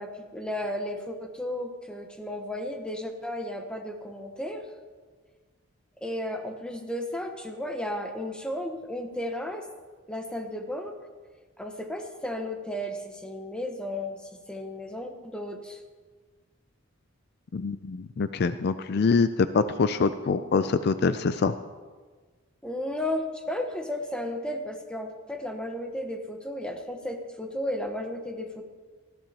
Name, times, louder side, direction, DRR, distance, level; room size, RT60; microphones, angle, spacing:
voice 1, 0.0-4.6 6.0-9.7 10.1-11.0 11.6-14.2 14.5-15.8 22.6-28.6, left 1 dB, 5° left, 3 dB, 1.1 m, -34 dB
voice 2, 17.5-21.5, left 4 dB, 55° left, 12 dB, 0.4 m, -25 dB
19.0 x 14.0 x 2.9 m, 1.4 s
head